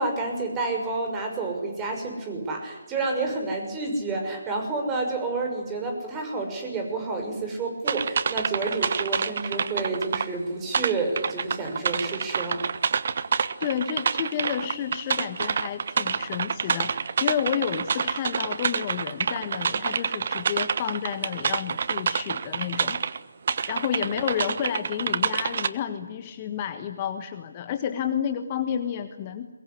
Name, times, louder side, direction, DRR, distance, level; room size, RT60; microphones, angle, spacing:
voice 1, 0.0-12.6 23.6-23.7, right 3 dB, 15° right, 3 dB, 6.2 m, -29 dB
sound 1, 7.9-10.3 10.7-23.2 23.5-25.7, right 6 dB, 45° right, 1.2 m, -27 dB
voice 2, 13.6-23.0 23.7-29.5, left 9 dB, 25° left, 8 dB, 1.5 m, -30 dB
23.0 x 22.5 x 9.9 m, 1.1 s
figure-of-eight pair, 150°, 0 cm